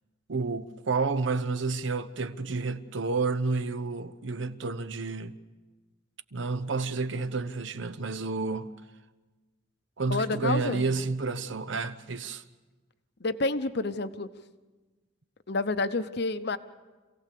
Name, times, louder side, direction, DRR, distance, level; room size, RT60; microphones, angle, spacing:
voice 1, 0.3-5.3 6.3-8.7 10.0-12.4, right 4 dB, 70° right, 0.9 m, -30 dB
voice 2, 10.1-10.8 13.2-14.3 15.5-16.6, left 3 dB, 55° left, 0.8 m, -29 dB
27.0 x 17.0 x 6.7 m
head